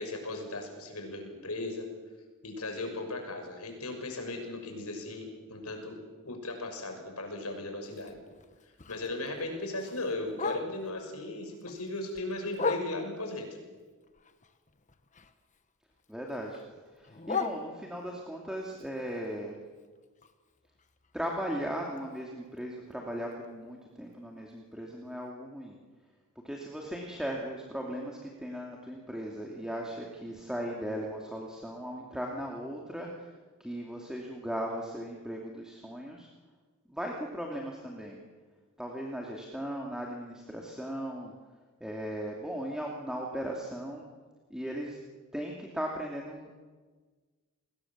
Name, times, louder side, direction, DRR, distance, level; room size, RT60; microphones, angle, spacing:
voice 1, 0.0-1.9 2.4-6.0 6.2-8.2 8.9-13.5, left 2 dB, 85° left, 4 dB, 6.3 m, -37 dB
Bark, 7.8-11.0 11.4-13.3 13.8-15.6 15.9-18.2 18.7-22.6 22.9-23.0 23.3-23.7 24.1-24.2 24.6-24.7 25.2-25.3, left 4 dB, 35° left, 1.3 m, -40 dB
voice 2, 16.1-16.6 16.9-19.5 21.1-25.8 26.4-33.3 33.6-36.3 36.9-38.2 38.8-41.3 41.8-44.0 44.5-45.0 45.3-46.6, equal, 5° right, -1 dB, 2.7 m, -37 dB
30.0 x 21.0 x 7.5 m, 1.4 s
head